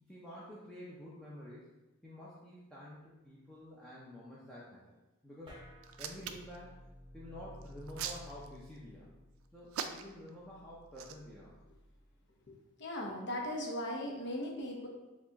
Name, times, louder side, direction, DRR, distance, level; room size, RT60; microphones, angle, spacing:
voice 1, 0.1-1.7 2.0-4.8 5.2-5.6 6.0-6.9 7.1-9.1 9.5-11.6, left 1 dB, 5° left, -8 dB, 0.5 m, -49 dB
sound 1, 5.5-12.2, left 1 dB, 20° right, 0.9 m, -55 dB
Hands, 5.8-6.6 7.6-8.8 9.7-10.3 10.9-11.1, right 8 dB, 65° right, 0.3 m, -40 dB
voice 2, 12.5-14.9, left 1 dB, 50° left, -1 dB, 0.8 m, -38 dB
4.7 x 2.4 x 3.9 m, 1.1 s
head